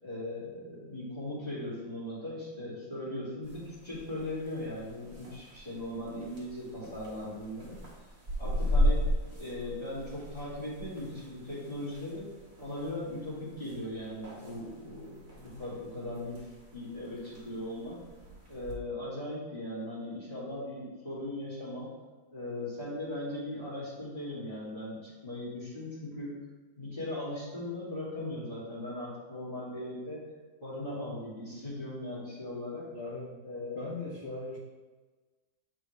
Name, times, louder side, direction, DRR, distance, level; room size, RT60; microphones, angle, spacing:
voice 1, 0.0-7.8 8.4-9.0 9.4-12.2 12.6-16.4 16.7-18.0 18.5-21.9 22.3-26.4 26.8-30.2 30.6-32.9 33.4-33.8, left 1 dB, 25° left, -10 dB, 2.4 m, -38 dB
sound 1, 3.4-18.7, equal, 40° right, 1.8 m, -36 dB
voice 2, 32.9-33.3 33.8-34.6, left 2 dB, 45° left, -4 dB, 1.0 m, -38 dB
8.7 x 4.7 x 3.3 m, 1.3 s
omnidirectional pair, 1.7 m